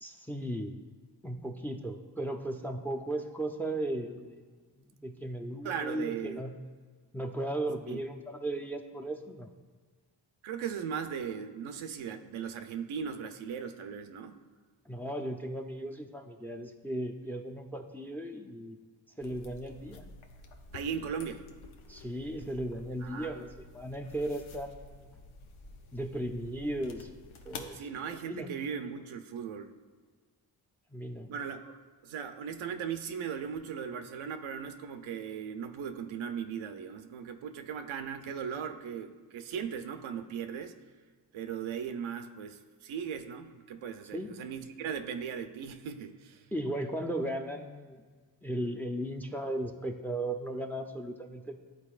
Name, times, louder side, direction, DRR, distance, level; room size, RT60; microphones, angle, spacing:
voice 1, 0.0-0.8 1.2-4.4 4.8-6.6 7.1-9.5 14.9-18.8 19.2-20.0 21.9-23.5 23.7-25.1 25.9-27.8 28.3-28.5 30.9-31.3 44.1-44.4 46.5-48.0 48.4-51.6, right 1 dB, 5° left, 5 dB, 0.5 m, -36 dB
voice 2, 5.6-6.4 7.9-8.0 10.4-14.4 20.7-21.4 23.0-23.5 27.7-29.7 31.3-31.8 32.0-40.8 41.3-46.5, right 7 dB, 85° right, 8 dB, 0.6 m, -38 dB
sound 1, 19.2-27.7, left 3 dB, 80° left, 0.7 m, -50 dB
11.0 x 4.1 x 2.4 m, 1.5 s
cardioid pair, 60°, 47 cm